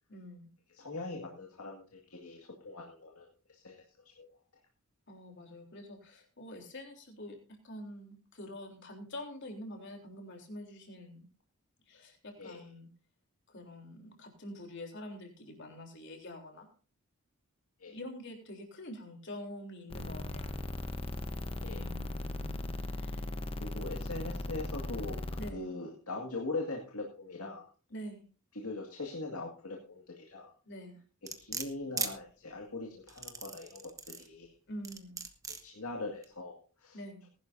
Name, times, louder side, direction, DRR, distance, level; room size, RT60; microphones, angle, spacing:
voice 1, 0.1-0.5 5.1-7.4 7.6-11.3 11.9-12.9 13.5-16.7 17.9-20.6 21.7-23.2 25.4-25.7 27.9-28.3 30.7-31.0 34.7-35.2 36.9-37.3, left 1 dB, 55° left, 2 dB, 3.6 m, -46 dB
voice 2, 0.7-4.4 12.4-12.7 17.8-18.0 21.6-21.8 23.6-27.7 28.5-30.5 31.4-34.5 35.6-37.0, left 2 dB, 85° left, 0 dB, 2.2 m, -41 dB
sound 1, 19.9-25.5, left 1 dB, 25° left, 1.0 m, -38 dB
sound 2, 31.3-32.1 33.1-34.3 34.8-35.6 36.2-36.3, right 5 dB, 15° right, 1.1 m, -37 dB
20.0 x 11.5 x 2.7 m, 0.37 s
head